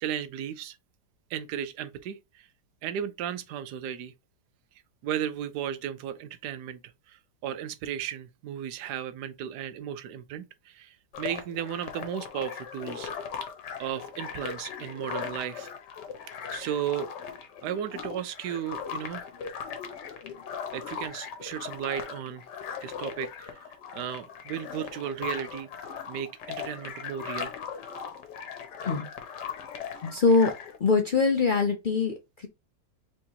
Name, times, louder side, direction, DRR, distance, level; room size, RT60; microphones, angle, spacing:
voice 1, 0.0-0.8 1.3-2.5 2.8-4.1 5.0-6.8 7.1-13.1 13.8-15.7 16.5-17.1 17.6-19.2 20.7-22.4 22.8-23.6 23.9-25.7 26.1-27.5, right 10 dB, 80° right, 1.2 m, -35 dB
sound 1, 11.1-30.8, left 7 dB, 90° left, 1.5 m, -39 dB
voice 2, 30.0-30.5 30.8-32.5, left 4 dB, 70° left, 0.4 m, -23 dB
4.5 x 3.7 x 2.8 m
omnidirectional pair, 1.8 m